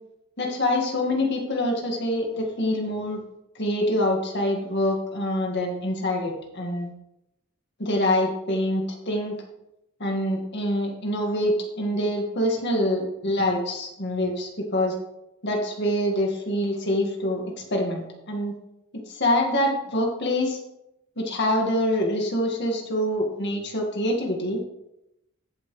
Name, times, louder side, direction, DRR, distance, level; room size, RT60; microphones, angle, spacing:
voice 1, 0.4-3.2 3.6-6.9 7.8-9.4 10.0-14.9 15.4-17.4 17.7-18.6 19.1-20.6 21.2-24.6, left 1 dB, 50° left, 1 dB, 1.8 m, -25 dB
16.5 x 5.7 x 3.2 m, 0.87 s
head